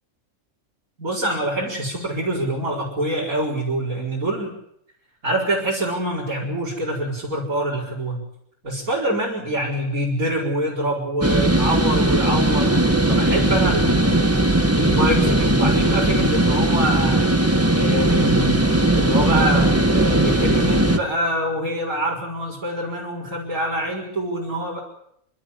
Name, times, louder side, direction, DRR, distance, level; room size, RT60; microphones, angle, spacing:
voice 1, 1.0-4.6 5.2-8.2 8.6-14.3 14.8-17.3 17.7-24.8, right 1 dB, 85° right, -5 dB, 5.3 m, -25 dB
sound 1, 11.2-21.0, right 1 dB, 10° right, 1.6 m, -18 dB
29.5 x 12.5 x 9.9 m, 0.74 s
omnidirectional pair, 1.4 m